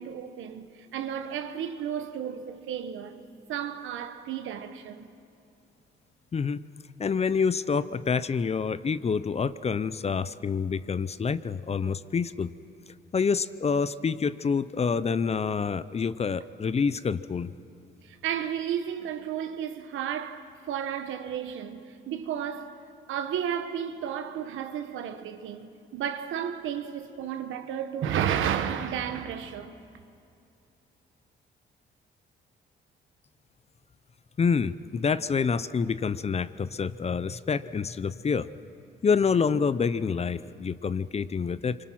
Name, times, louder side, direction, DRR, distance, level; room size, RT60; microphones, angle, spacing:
voice 1, 0.0-3.2 3.5-5.1 18.0-22.8 23.1-29.8, right 9 dB, 80° right, 1.3 m, -33 dB
voice 2, 6.3-6.6 7.0-12.5 13.1-17.5 34.4-38.5 39.0-41.8, left 5 dB, 30° left, 0.7 m, -27 dB
26.0 x 24.5 x 6.0 m
cardioid pair, 90°, 20 cm